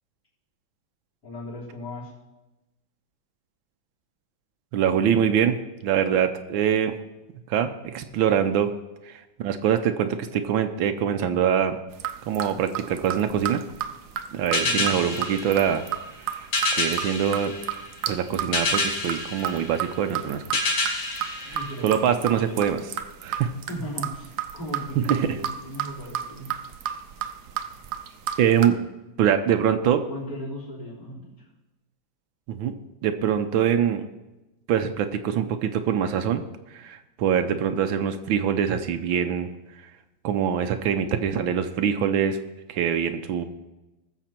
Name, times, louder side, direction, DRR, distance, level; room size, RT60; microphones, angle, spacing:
voice 1, 1.2-2.1 8.0-8.1 14.5-14.9 21.4-22.6 23.7-26.5 29.7-31.3, equal, 55° left, -5 dB, 4.5 m, -37 dB
voice 2, 4.7-5.6 5.8-7.0 7.5-8.7 9.1-11.8 12.3-13.6 14.3-15.8 16.3-17.5 18.1-20.8 21.4-21.6 21.8-22.8 23.2-23.5 25.1-25.2 28.4-28.8 29.2-30.0 32.5-32.8 33.0-34.0 34.7-36.4 36.7-39.5 40.2-42.4 42.7-43.4, right 8 dB, 80° right, 8 dB, 1.5 m, -24 dB
sound 1, 11.9-28.7, right 10 dB, 65° right, 1.2 m, -32 dB
sound 2, 14.5-22.4, left 3 dB, 85° left, 2.8 m, -29 dB
19.5 x 7.1 x 4.4 m, 1.0 s
omnidirectional pair, 2.2 m